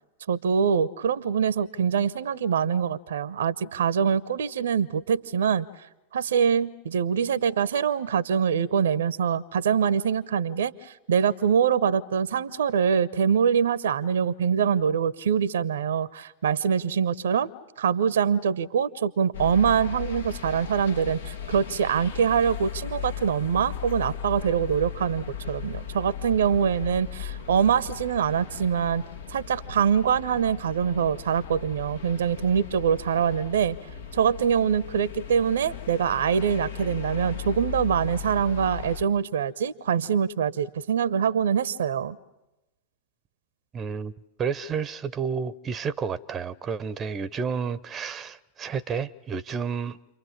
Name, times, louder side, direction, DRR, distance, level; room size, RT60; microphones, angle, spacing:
voice 1, 0.3-5.7 6.1-17.5 17.8-29.0 29.3-33.7 34.1-42.2, right 7 dB, 65° right, 0.9 m, -24 dB
sound 1, 19.3-39.0, left 8 dB, 65° left, 1.7 m, -37 dB
voice 2, 43.7-44.1 44.4-50.0, right 6 dB, 25° right, 0.8 m, -31 dB
30.0 x 24.0 x 7.3 m
figure-of-eight pair, 90°, 0 cm